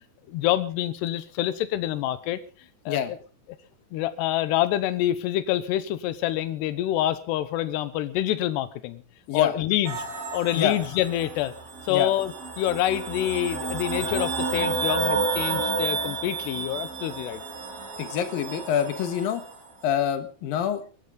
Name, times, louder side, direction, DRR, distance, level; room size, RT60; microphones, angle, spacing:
voice 1, 0.3-2.4 2.9-3.2 3.9-9.0 9.3-10.0 10.3-11.5 11.9-17.4, left 13 dB, 85° left, 14 dB, 3.2 m, -26 dB
sound 1, 9.9-19.6, right 4 dB, 55° right, 5.7 m, -31 dB
voice 2, 18.0-19.4 19.8-20.8, left 9 dB, 65° left, 10 dB, 3.0 m, -26 dB
24.0 x 12.5 x 3.9 m, 0.35 s
omnidirectional pair, 4.8 m